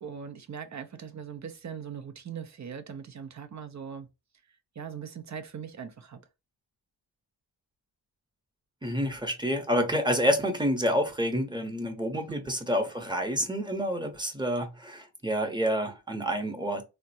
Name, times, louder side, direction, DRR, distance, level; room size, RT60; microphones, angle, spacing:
voice 1, 0.0-4.1 4.8-6.2 12.1-12.4, right 7 dB, 40° right, 0.6 m, -40 dB
voice 2, 8.8-16.8, equal, 10° right, 0.8 m, -28 dB
3.5 x 2.2 x 2.7 m
cardioid pair, 80°, 45 cm